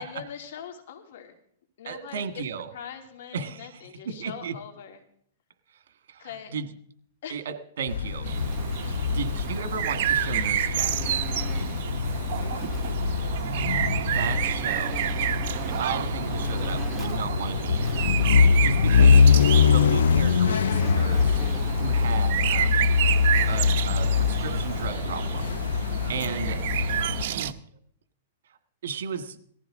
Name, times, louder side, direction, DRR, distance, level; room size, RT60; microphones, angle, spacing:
voice 1, 0.0-1.3 1.8-2.4 2.7-5.0 6.2-6.5 7.2-7.4 12.1-12.9 25.9-26.2, left 8 dB, 65° left, 5 dB, 2.8 m, -42 dB
voice 2, 1.8-2.7 3.3-3.7 4.0-4.6 6.1-6.7 7.3-8.3 9.1-11.3 14.1-15.1 15.7-18.2 18.6-19.3 19.6-21.4 21.8-22.9 23.5-25.6 26.1-26.6 27.2-27.6 28.8-29.4, right 6 dB, 75° right, 9 dB, 1.7 m, -34 dB
sound 1, 7.9-27.2, left 6 dB, 90° left, 0.5 m, -24 dB
Insect, 8.3-24.9, right 1 dB, ahead, 1.9 m, -43 dB
sound 2, 8.3-27.5, right 11 dB, 55° right, 0.8 m, -30 dB
18.5 x 15.0 x 3.8 m, 0.64 s
hypercardioid pair, 150°, 0 cm